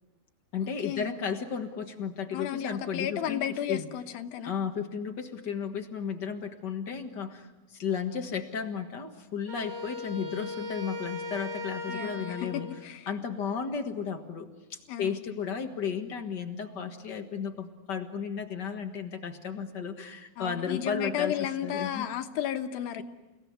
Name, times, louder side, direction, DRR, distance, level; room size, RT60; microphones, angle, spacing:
voice 1, 0.5-3.9 4.4-12.7 13.1-22.1, left 6 dB, 45° left, 5 dB, 1.4 m, -34 dB
voice 2, 2.3-4.5 11.9-13.1 14.9-15.2 20.4-23.0, left 10 dB, 85° left, 7 dB, 3.0 m, -33 dB
Wind instrument woodwind instrument, 9.5-12.8, left 2 dB, 30° right, 3.2 m, -38 dB
29.5 x 18.0 x 9.6 m, 1.2 s
omnidirectional pair, 4.1 m